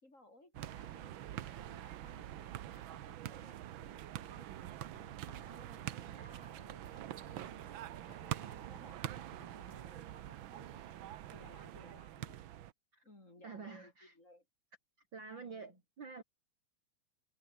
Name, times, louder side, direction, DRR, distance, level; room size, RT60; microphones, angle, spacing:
voice 1, 0.0-4.5 4.9-9.0 9.4-12.5 13.0-14.5 15.2-15.8, left 1 dB, 25° left, 5.2 m, -61 dB
sound 1, 0.5-12.7, right 12 dB, 80° right, 1.1 m, -45 dB
sound 2, 4.2-10.0, left 6 dB, 85° left, 5.0 m, -65 dB
voice 2, 13.4-14.1 15.1-16.2, right 5 dB, 45° right, 2.5 m, -48 dB
omnidirectional pair, 3.4 m